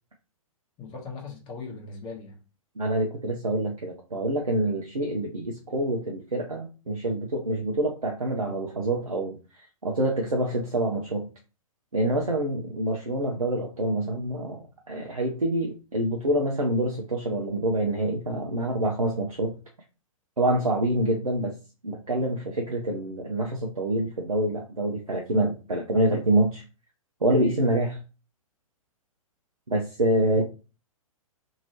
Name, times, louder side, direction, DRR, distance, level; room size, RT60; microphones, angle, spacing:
voice 1, 0.8-2.4 30.4-30.5, left 4 dB, 25° left, 0.9 m, -39 dB
voice 2, 2.8-11.3 11.9-19.5 20.4-21.6 21.8-26.6 27.2-28.0 29.7-30.4, right 1 dB, 85° right, 0.6 m, -26 dB
2.9 x 2.7 x 2.8 m
figure-of-eight pair, 110°, 18 cm